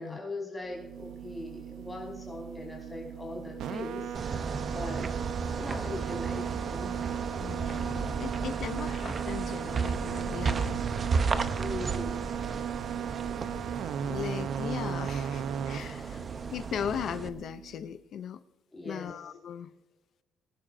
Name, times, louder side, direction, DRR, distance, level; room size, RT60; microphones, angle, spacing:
voice 1, 0.0-5.0 5.6-7.0 11.6-12.2 18.7-19.1, left 2 dB, 10° left, -2 dB, 5.0 m, -40 dB
sound 1, 0.7-17.9, right 9 dB, 75° right, 0.7 m, -37 dB
sound 2, 4.1-17.3, right 4 dB, 30° right, 0.7 m, -34 dB
voice 2, 7.4-10.8 14.0-16.2 16.5-18.4 18.8-19.7, left 8 dB, 55° left, 13 dB, 0.5 m, -38 dB
23.0 x 11.5 x 2.6 m, 1.1 s
cardioid pair, 160°, 0 cm